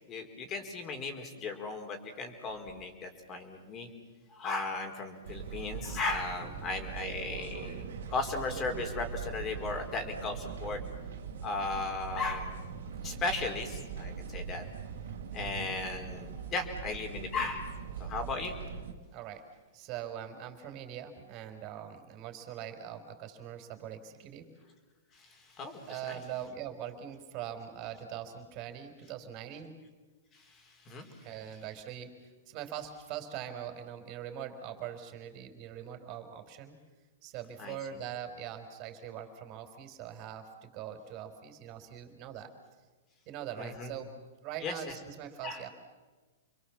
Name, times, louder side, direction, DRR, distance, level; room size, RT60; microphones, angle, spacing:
voice 1, 0.1-3.9 4.3-10.8 11.4-12.6 13.0-14.6 15.3-17.7 18.0-18.6 25.1-26.2 30.4-31.1 37.6-37.8 43.6-43.9 44.6-44.8 45.4-45.6, left 3 dB, 30° left, 5 dB, 4.6 m, -36 dB
sound 1, 5.2-18.9, right 6 dB, 75° right, 3.1 m, -41 dB
voice 2, 6.4-6.7 15.2-15.7 19.1-19.4 19.7-24.5 25.9-29.7 31.2-36.8 37.2-42.5 43.3-44.1 44.4-45.7, right 10 dB, 40° right, 7 dB, 4.5 m, -42 dB
29.5 x 23.0 x 7.4 m, 1.3 s
hypercardioid pair, 125°, 0 cm